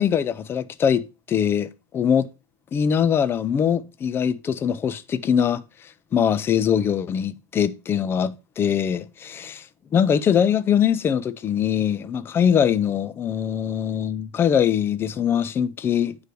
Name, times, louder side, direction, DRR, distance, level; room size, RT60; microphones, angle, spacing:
voice 1, 0.0-2.3 2.7-5.6 6.1-9.6 9.9-16.2, left 8 dB, 20° left, 0.4 m, -22 dB
9.1 x 3.2 x 4.8 m
supercardioid pair, 150°, 11 cm